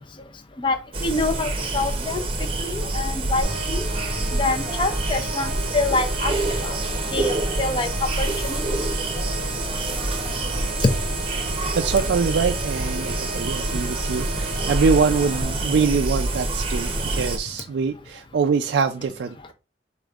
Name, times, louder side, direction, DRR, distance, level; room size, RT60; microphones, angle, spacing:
voice 1, 0.6-2.2 2.6-3.8 4.3-6.3 6.6-6.7 7.1-8.6 10.8-10.9, left 3 dB, 30° left, 7 dB, 0.5 m, -25 dB
sound 1, 0.9-17.4, right 2 dB, 30° right, 0.7 m, -26 dB
sound 2, 3.4-15.4, left 1 dB, ahead, 0.9 m, -37 dB
voice 2, 11.7-19.5, right 5 dB, 75° right, 6 dB, 0.3 m, -24 dB
5.1 x 4.2 x 2.4 m, 0.32 s
head